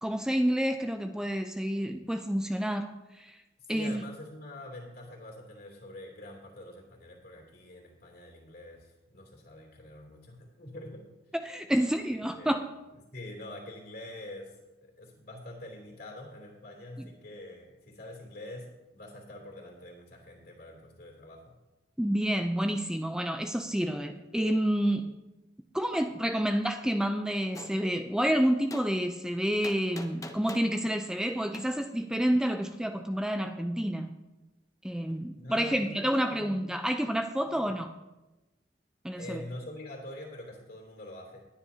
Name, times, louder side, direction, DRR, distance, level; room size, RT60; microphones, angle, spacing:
voice 1, 0.0-2.9 3.2-3.4 3.7-4.0 11.4-12.7 22.0-25.1 25.7-34.1 34.8-37.9 39.0-39.4, equal, 5° right, 6 dB, 0.4 m, -29 dB
voice 2, 3.6-11.1 12.3-12.5 12.9-14.5 14.8-21.5 35.4-36.6 37.4-37.8 39.1-41.4, left 1 dB, 55° left, 1 dB, 3.1 m, -45 dB
Gunshot gunfire, 27.5-27.7 28.7-28.9 29.6-30.7 31.5-31.7, left 2 dB, 20° left, 0.8 m, -43 dB
19.5 x 10.0 x 2.8 m, 1.0 s
head